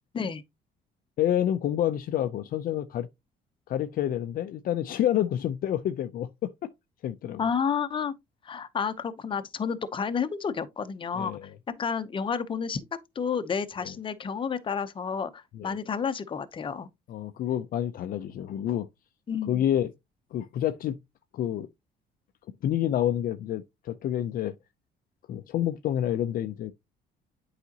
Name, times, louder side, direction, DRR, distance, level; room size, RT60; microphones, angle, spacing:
voice 1, 1.2-3.1 3.7-6.7 7.0-7.5 11.1-11.5 13.8-13.9 15.5-15.8 17.1-18.9 19.5-19.9 20.3-21.0 21.3-21.7 22.6-24.5 25.3-26.7, left 11 dB, 55° left, 0.5 m, -28 dB
voice 2, 7.4-8.1 8.4-12.8 13.2-16.9 19.3-19.6, left 6 dB, 30° left, 0.8 m, -30 dB
8.3 x 5.0 x 2.8 m
cardioid pair, 110°, 17 cm